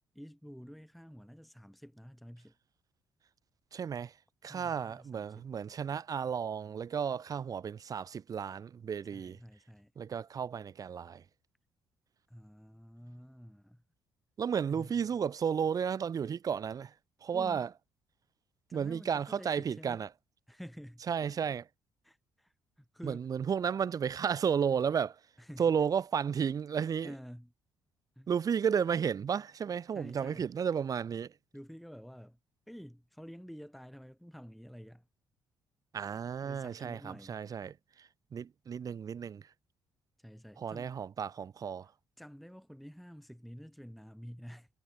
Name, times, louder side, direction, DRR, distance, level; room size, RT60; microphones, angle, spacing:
voice 1, 0.1-2.6 4.4-5.5 9.1-9.9 12.3-13.8 14.7-15.2 17.3-17.6 18.7-20.0 20.5-21.5 22.0-23.3 25.4-25.7 27.0-27.5 28.2-28.3 29.9-30.5 31.5-32.4 32.7-35.1 36.4-37.4 40.2-40.9 42.2-44.7, equal, ahead, 1.1 m, -50 dB
voice 2, 3.7-4.1 4.4-9.4 10.0-11.2 14.4-16.9 17.2-17.7 18.7-20.1 21.1-21.6 23.0-25.2 25.6-27.1 28.3-31.3 35.9-39.5 40.6-41.9, right 7 dB, 45° right, 0.7 m, -33 dB
hypercardioid pair, 55°, 8 cm